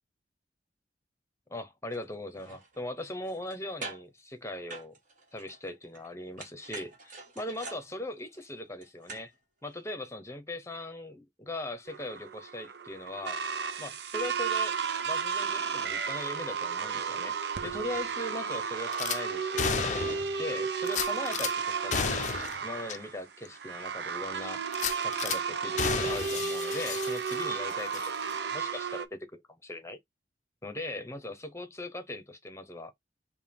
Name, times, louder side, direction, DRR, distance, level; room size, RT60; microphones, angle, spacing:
voice 1, 1.5-4.9 5.3-9.3 9.6-13.4 13.8-14.8 15.0-17.4 17.6-22.1 22.6-24.6 25.0-30.0 30.6-32.9, left 1 dB, 15° left, 0.9 m, -40 dB
sound 1, 1.9-2.0 2.3-3.6 3.8-4.2 4.7-6.1 6.4-9.4 9.7-9.8, right 3 dB, 45° right, 1.5 m, -45 dB
sound 2, 11.9-29.0, right 6 dB, 75° right, 0.6 m, -33 dB
Gunshot gunfire / Glass, 18.9-19.2 19.6-20.3 20.9-21.5 21.9-22.6 22.9-23.0 23.4-23.5 24.7-25.4 25.8-27.6 27.9-28.1, left 6 dB, 45° left, 0.5 m, -32 dB
5.3 x 2.3 x 3.5 m
head